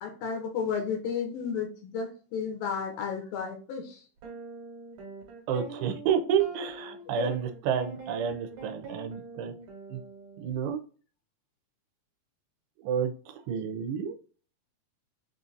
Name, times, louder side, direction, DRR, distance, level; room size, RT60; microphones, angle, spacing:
voice 1, 0.0-4.0 7.2-7.3, left 6 dB, 75° left, 2.3 m, -33 dB
sound 1, 3.4-3.5 4.2-10.6, right 3 dB, 65° right, 2.5 m, -43 dB
voice 2, 5.5-9.6 9.9-10.0 10.4-10.8 12.8-14.2, right 8 dB, 80° right, 2.5 m, -30 dB
6.2 x 2.7 x 2.6 m
omnidirectional pair, 4.4 m